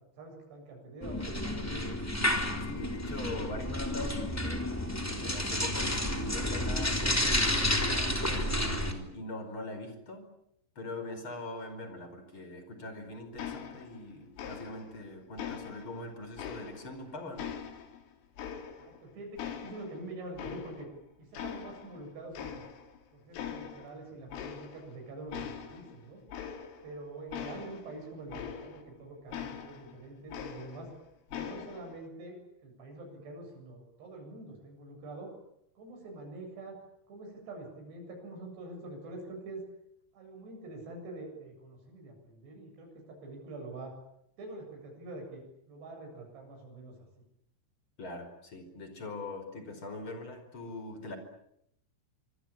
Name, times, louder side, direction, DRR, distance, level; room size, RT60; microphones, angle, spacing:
voice 1, 0.2-1.9 18.8-20.9 21.2-22.6 23.1-26.2 26.8-30.9 31.3-35.3 35.8-36.8 37.1-39.6 40.1-43.9 44.4-45.4 45.7-46.9, right 2 dB, 60° right, 2 dB, 9.7 m, -45 dB
sound 1, 1.0-8.9, left 1 dB, 5° left, 2.4 m, -30 dB
voice 2, 2.7-4.6 5.2-7.7 8.3-10.2 10.7-17.5 48.0-51.2, left 2 dB, 25° left, 8 dB, 5.3 m, -42 dB
sound 2, 13.4-14.1 14.4-15.0 15.4-17.0 17.4-19.0 19.4-21.0 21.3-22.0 22.3-23.0 23.3-23.9 24.3-25.0 25.3-28.9 29.3-31.0 31.3-31.9, left 8 dB, 90° left, 5.2 m, -42 dB
26.0 x 23.5 x 8.9 m, 0.75 s
omnidirectional pair, 5.5 m